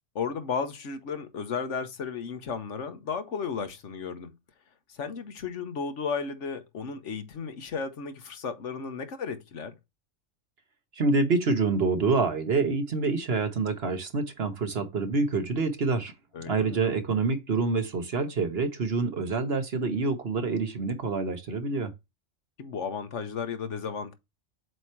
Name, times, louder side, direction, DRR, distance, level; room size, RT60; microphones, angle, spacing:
voice 1, 0.1-4.3 4.9-9.8 16.3-16.8 22.6-24.1, left 5 dB, 70° left, 1.3 m, -34 dB
voice 2, 11.0-16.1 16.5-21.9, right 4 dB, 55° right, 1.3 m, -27 dB
7.7 x 3.0 x 4.5 m
omnidirectional pair, 1.3 m